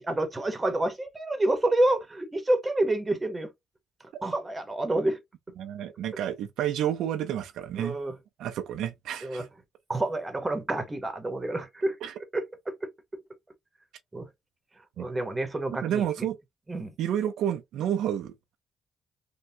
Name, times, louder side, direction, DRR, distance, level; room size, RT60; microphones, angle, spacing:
voice 1, 0.0-3.5 4.2-5.2 7.8-8.2 9.2-9.5 9.9-12.0 12.3-12.9 14.1-14.3 15.0-16.1 16.7-16.9, right 1 dB, 20° right, 0.9 m, -28 dB
voice 2, 5.6-8.0 8.4-9.5 12.0-12.1 15.0-15.1 15.8-16.4 17.0-18.3, right 10 dB, 80° right, 0.5 m, -30 dB
3.4 x 2.2 x 2.7 m
cardioid pair, 90°, 0 cm